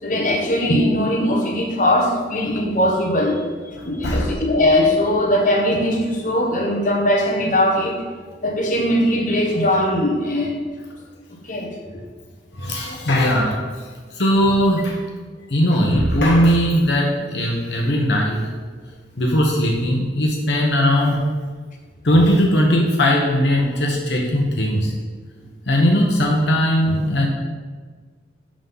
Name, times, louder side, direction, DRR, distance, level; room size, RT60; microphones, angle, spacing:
voice 1, 0.0-3.4 3.8-8.0 8.4-10.6 11.4-12.0, left 1 dB, 45° left, -1 dB, 1.4 m, -20 dB
voice 2, 12.5-15.0 15.5-18.5 19.2-21.2 22.0-24.9 25.7-27.3, equal, 65° left, -1 dB, 1.1 m, -19 dB
11.5 x 3.8 x 5.6 m, 1.5 s
head